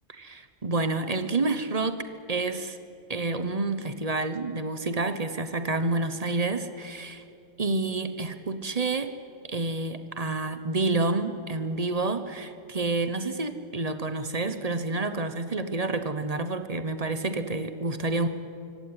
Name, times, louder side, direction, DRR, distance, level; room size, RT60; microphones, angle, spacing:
voice 1, 0.2-2.8 3.1-7.2 7.6-9.1 9.4-18.3, right 3 dB, 30° right, 10 dB, 1.1 m, -29 dB
24.5 x 16.5 x 9.7 m, 2.5 s
omnidirectional pair, 1.3 m